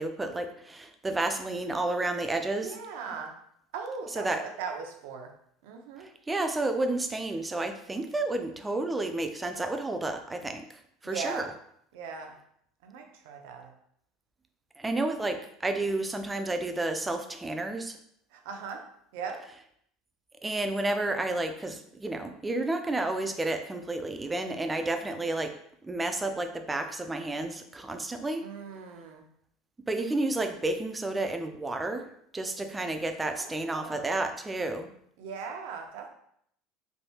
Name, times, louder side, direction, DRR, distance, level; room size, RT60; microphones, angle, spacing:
voice 1, 0.0-2.7 4.2-4.4 6.0-10.6 11.0-11.5 14.8-18.0 20.4-25.6 25.8-28.5 29.9-34.9, right 2 dB, 15° right, 6 dB, 0.4 m, -31 dB
voice 2, 2.3-3.3 3.7-5.3 5.6-6.1 11.0-11.5 11.9-12.3 12.8-13.7 18.3-18.8 19.1-19.4 28.4-29.2 33.3-34.2 35.2-36.1, right 5 dB, 80° right, 4 dB, 0.5 m, -39 dB
3.3 x 2.7 x 2.8 m, 0.70 s
supercardioid pair, 115°, 0 cm